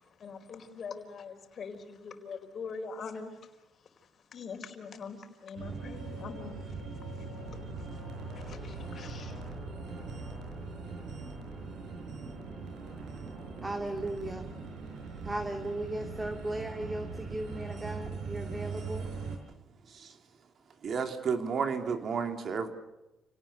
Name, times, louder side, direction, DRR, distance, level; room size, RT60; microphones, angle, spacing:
voice 1, 0.2-3.4 4.3-6.7 8.4-9.4, left 5 dB, 55° left, 4.6 m, -43 dB
sound 1, 5.6-19.4, right 4 dB, 80° right, 5.6 m, -41 dB
voice 2, 13.3-14.4 15.2-19.1, right 1 dB, 15° right, 2.4 m, -36 dB
voice 3, 20.8-22.7, right 6 dB, 55° right, 2.9 m, -32 dB
29.5 x 18.5 x 6.8 m
cardioid pair, 90°, 0 cm